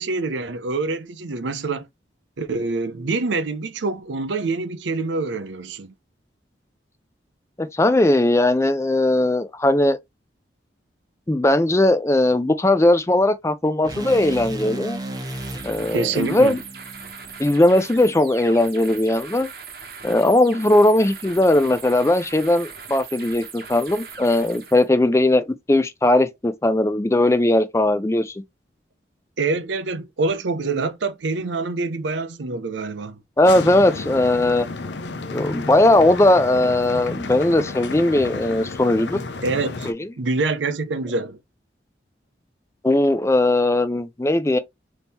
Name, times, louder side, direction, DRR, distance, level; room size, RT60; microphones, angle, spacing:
voice 1, 0.0-1.9 2.4-5.9 15.9-16.6 29.4-33.2 39.4-39.9 40.2-41.4, right 3 dB, 85° right, 0.6 m, -26 dB
voice 2, 7.6-10.0 11.3-15.0 15.6-16.6 17.4-19.5 20.0-28.3 33.4-34.7 35.3-39.2 39.9-40.0 42.8-44.6, left 1 dB, 15° left, 0.4 m, -18 dB
sound 1, 13.8-18.0, right 1 dB, 20° right, 0.7 m, -35 dB
sound 2, 15.0-24.9, right 6 dB, 55° right, 1.1 m, -40 dB
sound 3, 33.5-39.9, left 3 dB, 75° left, 0.6 m, -32 dB
4.1 x 2.9 x 3.5 m
head